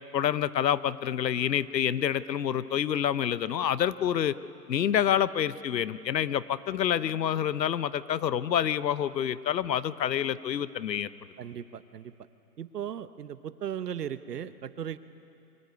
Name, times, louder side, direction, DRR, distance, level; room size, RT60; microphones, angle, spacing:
voice 1, 0.1-4.3 4.7-11.1, left 9 dB, 90° left, 16 dB, 0.9 m, -27 dB
voice 2, 11.4-12.1 12.6-15.0, right 9 dB, 70° right, 13 dB, 1.0 m, -37 dB
24.5 x 16.0 x 9.6 m, 2.8 s
hypercardioid pair, 175°, 49 cm